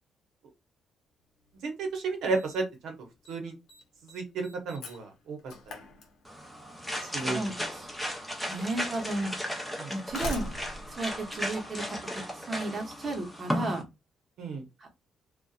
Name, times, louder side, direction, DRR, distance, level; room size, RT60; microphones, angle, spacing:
Slam, 1.5-1.6 2.3-2.8 3.0-3.4 3.7-6.6 7.7-7.8 8.7-8.8 9.7-12.1, left 1 dB, 80° left, 0.7 m, -42 dB
voice 1, 1.6-2.9 3.3-3.5 4.0-5.4 7.0-7.5 9.8-9.9 14.4-14.6, right 3 dB, 80° right, 4 dB, 0.8 m, -33 dB
sound 1, 6.3-13.8, equal, 5° left, 0.6 m, -35 dB
voice 2, 7.3-7.9 8.5-9.3 9.9-10.5 10.9-12.0 12.3-13.8 14.8-14.9, right 2 dB, 35° right, 3 dB, 0.8 m, -34 dB
2.6 x 2.2 x 2.3 m, 0.23 s
cardioid pair, 125°, 0 cm